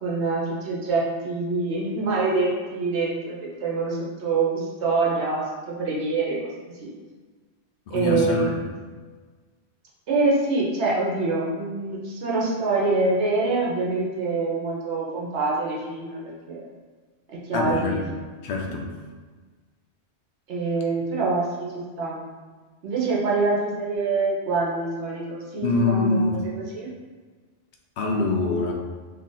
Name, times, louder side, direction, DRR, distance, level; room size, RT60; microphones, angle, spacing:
voice 1, 0.0-3.4 3.6-6.4 6.8-6.9 7.9-8.5 10.1-16.2 16.5-16.7 17.5-18.0 20.5-22.2 22.8-26.9, right 3 dB, 80° right, -4 dB, 1.1 m, -25 dB
voice 2, 7.9-8.4 17.5-18.0 18.4-18.9 25.6-26.4 28.0-28.7, left 3 dB, 60° left, 0 dB, 0.6 m, -24 dB
2.9 x 2.5 x 3.8 m, 1.4 s
omnidirectional pair, 1.1 m